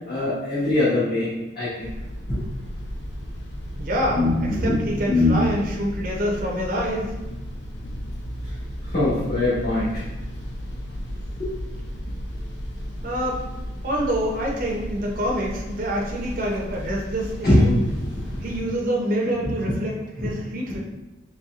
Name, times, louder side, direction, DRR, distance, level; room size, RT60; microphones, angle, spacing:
voice 1, 0.1-1.3 1.5-1.9 2.3-2.4 4.1-5.3 8.9-10.0 11.4-11.6 17.4-17.8 18.2-18.4 20.2-20.3, left 2 dB, 50° left, -12 dB, 1.3 m, -22 dB
sound 1, 1.8-18.6, equal, 65° left, 0.6 m, -34 dB
voice 2, 3.8-7.1 13.0-13.4 13.8-17.7 18.4-20.8, equal, 45° right, -2 dB, 0.6 m, -26 dB
4.2 x 3.1 x 2.4 m, 1.1 s
head